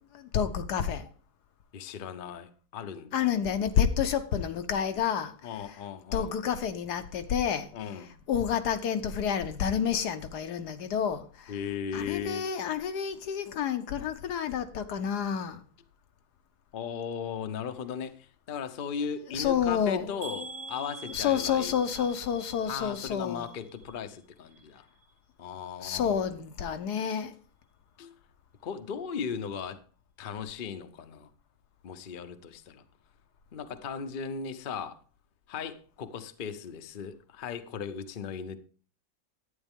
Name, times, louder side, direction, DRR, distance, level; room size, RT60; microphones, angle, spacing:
voice 1, 0.1-1.1 3.1-5.5 6.1-7.7 8.3-11.5 11.9-15.6 19.3-20.1 21.1-23.5 25.8-27.3, left 8 dB, 80° left, 1.4 m, -29 dB
voice 2, 1.7-3.2 5.4-6.4 7.7-8.1 11.5-12.5 16.7-22.1 22.7-24.9 25.4-26.2 28.0-28.1 28.6-29.8 30.2-31.3 31.8-32.8 33.5-35.0 35.5-38.6, left 7 dB, 45° left, 0.7 m, -37 dB
sound 1, 20.2-24.2 24.5-25.1 25.6-25.7 26.0-26.1, right 4 dB, 70° right, 2.4 m, -46 dB
11.0 x 9.1 x 3.6 m
omnidirectional pair, 1.7 m